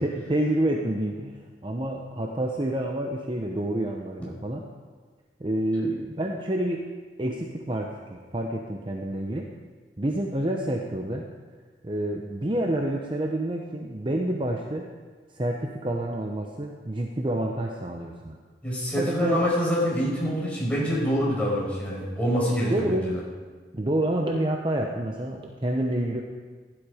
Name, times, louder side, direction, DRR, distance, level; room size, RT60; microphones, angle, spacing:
voice 1, 0.0-4.7 5.4-6.9 7.2-9.5 10.0-11.3 11.8-14.9 15.3-18.4 19.0-19.4 22.7-23.1 23.7-26.2, right 1 dB, 30° right, 1 dB, 0.9 m, -28 dB
voice 2, 18.6-23.1, equal, 10° left, -6 dB, 5.4 m, -26 dB
15.5 x 11.0 x 5.0 m, 1.5 s
head